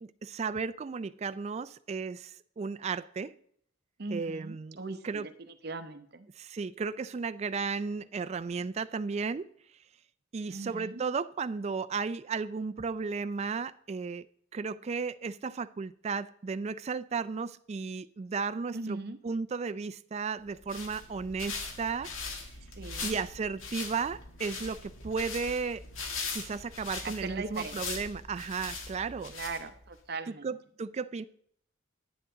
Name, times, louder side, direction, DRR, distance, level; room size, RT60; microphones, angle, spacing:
voice 1, 0.0-3.3 4.1-4.8 5.0-5.3 6.4-9.5 10.3-14.3 14.5-22.1 23.0-25.8 26.3-29.3 30.3-31.2, right 5 dB, 30° right, 0.3 m, -34 dB
voice 2, 4.0-5.3 5.6-6.3 10.5-11.0 18.7-19.2 22.8-23.1 27.0-27.8 29.3-30.6, right 3 dB, 55° right, 0.8 m, -39 dB
sound 1, 20.5-30.0, left 4 dB, 85° left, 1.7 m, -40 dB
10.5 x 10.0 x 3.8 m
head